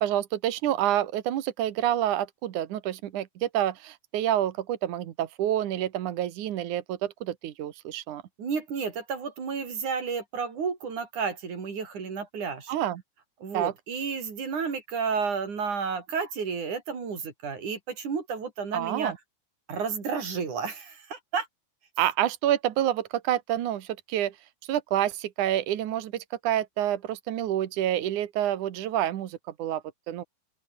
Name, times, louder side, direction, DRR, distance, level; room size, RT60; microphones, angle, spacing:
voice 1, 0.0-8.2 12.7-13.0 13.5-13.7 18.7-19.2 22.0-24.3 24.7-30.2, right 12 dB, 65° right, 2.2 m, -28 dB
voice 2, 8.4-12.7 13.4-19.1 19.7-21.5, right 5 dB, 45° right, 5.6 m, -31 dB
open air
omnidirectional pair, 5.0 m